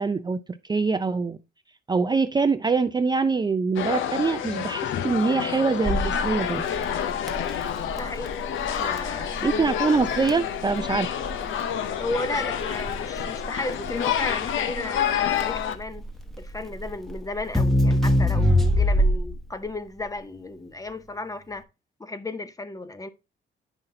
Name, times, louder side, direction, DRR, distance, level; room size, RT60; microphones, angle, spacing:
voice 1, 0.0-1.4 1.9-6.6 9.4-11.1, right 4 dB, 20° right, 0.4 m, -24 dB
sound 1, 3.8-15.8, left 9 dB, 75° left, 0.7 m, -28 dB
Crackle, 5.8-19.4, left 1 dB, ahead, 1.0 m, -25 dB
voice 2, 7.9-8.4 8.7-9.3 12.0-16.0 16.4-21.6 22.0-23.1, left 2 dB, 15° left, 0.7 m, -34 dB
9.0 x 5.7 x 2.7 m
cardioid pair, 90°, 20 cm